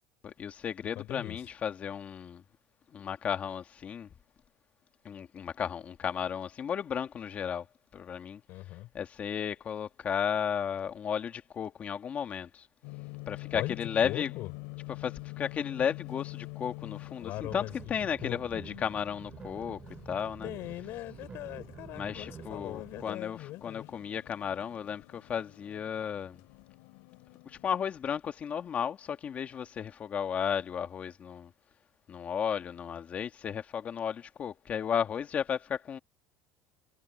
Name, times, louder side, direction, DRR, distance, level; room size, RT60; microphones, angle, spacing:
voice 1, 0.2-2.4 2.9-4.1 5.0-7.7 7.9-8.4 8.9-12.7 13.3-14.3 15.0-19.8 20.0-20.5 21.9-26.4 27.4-31.5 32.1-36.0, left 8 dB, 30° left, 1.7 m, -34 dB
voice 2, 0.9-1.4 8.5-8.9 13.5-13.8 14.0-14.5 17.2-18.6 20.4-23.9, left 17 dB, 55° left, 6.0 m, -40 dB
sound 1, 12.8-27.8, left 28 dB, 80° left, 4.4 m, -47 dB
sound 2, 17.4-23.0, right 6 dB, 20° right, 3.2 m, -48 dB
cardioid pair, 155°, 5 cm